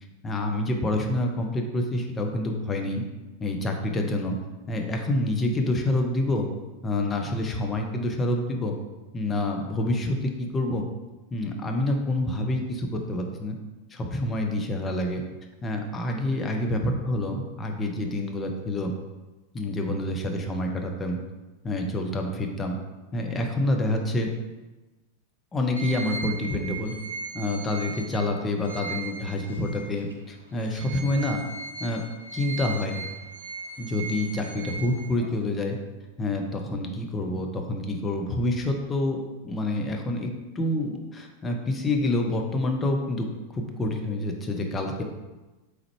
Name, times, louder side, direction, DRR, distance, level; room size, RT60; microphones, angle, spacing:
voice 1, 0.2-3.0 3.4-4.4 4.7-6.5 6.8-8.7 9.1-10.9 11.3-13.6 13.9-15.2 15.6-18.9 19.5-21.2 21.6-22.8 23.1-24.3 25.5-26.9 27.3-31.5 31.8-32.0 32.3-33.1 33.8-35.8 36.2-43.3 43.5-45.0, left 1 dB, 20° left, 3 dB, 0.5 m, -27 dB
sound 1, 25.8-30.1 30.5-35.4, right 4 dB, 75° right, 0.4 m, -38 dB
3.7 x 3.1 x 3.1 m, 1.1 s
figure-of-eight pair, 90°, 0 cm